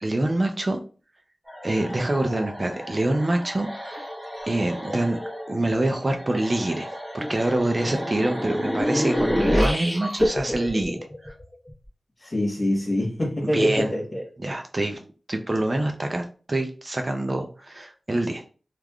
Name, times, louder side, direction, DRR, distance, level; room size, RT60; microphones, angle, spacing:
voice 1, 0.0-0.8 1.6-4.1 4.5-5.2 5.5-6.9 7.1-11.0 11.2-11.3 13.4-13.9 14.4-15.0 15.3-18.4, right 1 dB, 40° right, 0.5 m, -25 dB
sound 1, 1.5-11.7, equal, ahead, 1.1 m, -29 dB
voice 2, 12.2-14.2, left 1 dB, 45° left, 1.2 m, -25 dB
3.3 x 2.4 x 2.2 m
cardioid pair, 50°, 0 cm